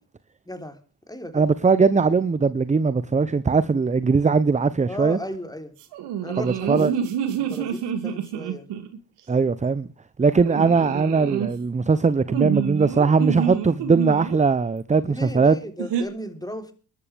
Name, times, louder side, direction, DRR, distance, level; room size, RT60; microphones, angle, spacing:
voice 1, 0.5-0.8 1.1-1.4 4.9-5.7 6.2-7.1 7.4-8.7 9.3-9.5 15.0-16.7, equal, 10° left, 3.7 m, -35 dB
voice 2, 1.3-5.2 6.4-6.9 9.3-9.9 10.2-15.5, right 4 dB, 20° right, 0.7 m, -20 dB
sound 1, 5.9-9.0 10.4-11.5 12.3-14.4 15.8-16.0, right 8 dB, 80° right, 2.5 m, -27 dB
22.5 x 12.5 x 3.4 m
supercardioid pair, 65°, 41 cm